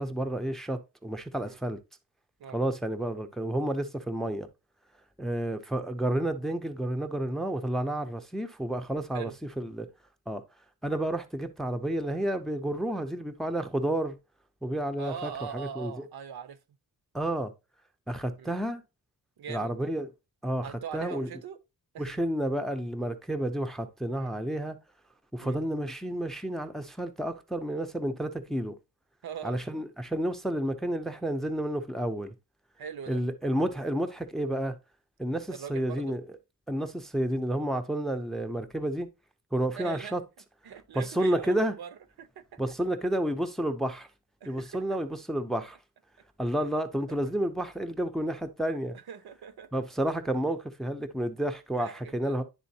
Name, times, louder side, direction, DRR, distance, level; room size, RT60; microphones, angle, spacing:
voice 1, 0.0-1.8 2.5-4.5 5.2-9.3 9.6-9.9 10.3-10.4 10.8-14.2 14.6-16.1 17.1-17.5 18.1-18.8 19.5-20.1 20.4-21.3 22.0-24.8 25.3-28.7 29.4-32.3 33.1-34.8 35.2-36.2 36.7-39.1 39.5-40.2 40.9-41.8 42.6-44.1 44.5-45.8 46.4-49.0 49.7-52.4, right 1 dB, ahead, 0.4 m, -30 dB
voice 2, 15.0-16.6 18.4-18.6 19.4-19.9 20.6-21.6 21.9-22.2 24.1-24.4 25.4-25.6 29.2-29.6 32.8-33.2 35.5-36.2 39.8-40.2 40.6-41.9 42.2-42.6 44.4-44.7 47.1-47.2 48.9-49.8 51.8-52.4, right 7 dB, 90° right, 0.8 m, -41 dB
10.5 x 3.9 x 2.7 m
wide cardioid pair, 170°, 36 cm